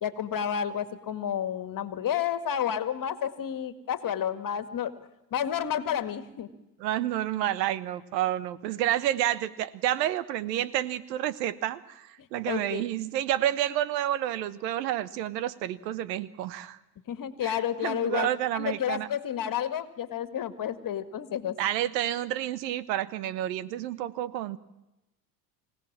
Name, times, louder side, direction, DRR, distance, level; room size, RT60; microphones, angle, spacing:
voice 1, 0.0-4.9 5.3-6.5 12.5-12.8 17.1-21.5, left 9 dB, 40° left, 11 dB, 2.0 m, -31 dB
voice 2, 6.8-16.8 17.4-19.1 21.6-24.6, right 12 dB, 80° right, 17 dB, 1.2 m, -29 dB
25.0 x 17.5 x 7.4 m, 0.97 s
hypercardioid pair, 85°, 49 cm